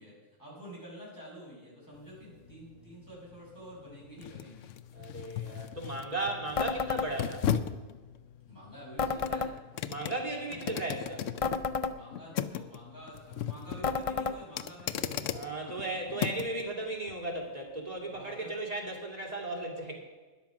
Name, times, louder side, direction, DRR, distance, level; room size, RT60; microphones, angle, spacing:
voice 1, 0.0-4.7 8.5-9.7 10.3-10.6 11.9-16.3 18.1-18.5, equal, 15° left, -6 dB, 5.8 m, -49 dB
sound 1, 1.9-16.6 17.1-17.2, left 9 dB, 75° left, 1.0 m, -38 dB
voice 2, 4.9-7.4 9.9-11.3 15.3-19.9, right 2 dB, 30° right, -1 dB, 2.7 m, -36 dB
sound 2, 6.6-7.1 9.0-9.5 11.4-12.0 13.8-14.4, left 5 dB, 50° left, 0.4 m, -30 dB
13.0 x 10.5 x 6.0 m, 1.3 s
omnidirectional pair, 1.3 m